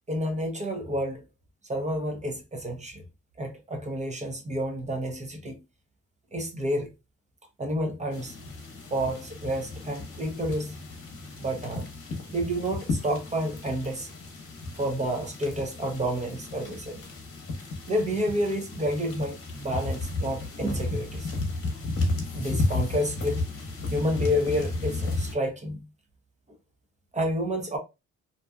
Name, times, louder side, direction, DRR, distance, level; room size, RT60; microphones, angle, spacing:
voice 1, 0.1-1.2 1.7-3.0 3.4-5.6 6.3-6.9 7.6-8.3 8.9-10.7 11.4-11.9 12.3-14.1 14.8-17.0 17.9-21.3 22.3-23.4 23.9-25.8 27.1-27.8, equal, 25° right, 0.6 m, -29 dB
sound 1, 8.1-25.3, left 2 dB, 45° left, 0.9 m, -33 dB
2.6 x 2.4 x 2.3 m
cardioid pair, 90°, 30 cm